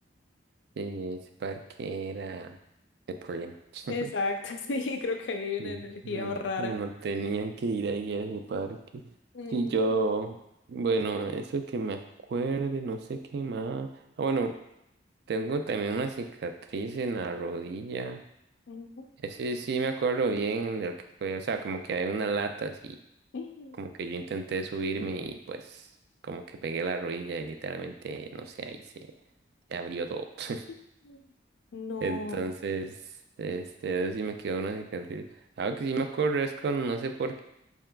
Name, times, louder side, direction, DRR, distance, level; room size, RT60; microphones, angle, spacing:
voice 1, 0.8-2.6 3.1-4.1 5.6-5.8 6.0-9.0 9.5-10.4 10.7-12.0 12.3-13.9 14.2-14.6 15.3-18.2 19.2-23.0 23.8-25.9 26.2-28.8 29.7-30.6 32.0-33.0 33.4-35.2 35.6-37.4, right 3 dB, 60° right, 7 dB, 0.3 m, -32 dB
voice 2, 3.9-6.8 9.3-9.8 18.7-19.1 23.3-23.8 31.0-31.2 31.7-32.4, left 3 dB, 80° left, 5 dB, 0.5 m, -34 dB
4.5 x 3.6 x 2.2 m, 0.82 s
head